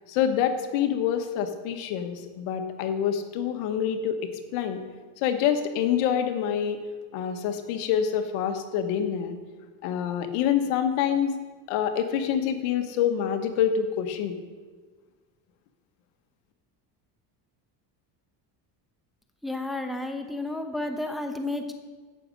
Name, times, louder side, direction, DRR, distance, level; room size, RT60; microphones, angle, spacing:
voice 1, 0.1-4.8 5.2-6.8 7.1-9.4 9.8-11.4 11.7-14.3, left 8 dB, 80° left, 8 dB, 1.3 m, -26 dB
voice 2, 19.4-21.7, left 2 dB, ahead, 5 dB, 1.0 m, -31 dB
16.0 x 6.5 x 5.2 m, 1.4 s
supercardioid pair, 100°, 49 cm